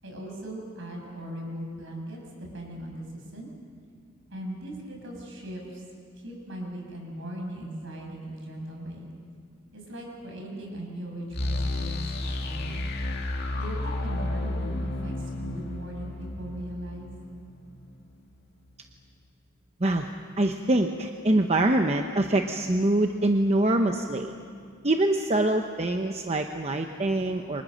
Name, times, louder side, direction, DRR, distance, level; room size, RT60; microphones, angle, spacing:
voice 1, 0.0-2.2 2.5-3.5 4.3-5.8 6.2-9.1 9.7-12.8 13.5-17.1, right 1 dB, 60° right, 1 dB, 6.9 m, -39 dB
sound 1, 11.3-18.1, left 2 dB, 50° left, 2.6 m, -32 dB
voice 2, 20.4-24.3 24.8-27.6, right 1 dB, 30° right, 4 dB, 0.9 m, -24 dB
29.0 x 25.0 x 6.6 m, 2.2 s
head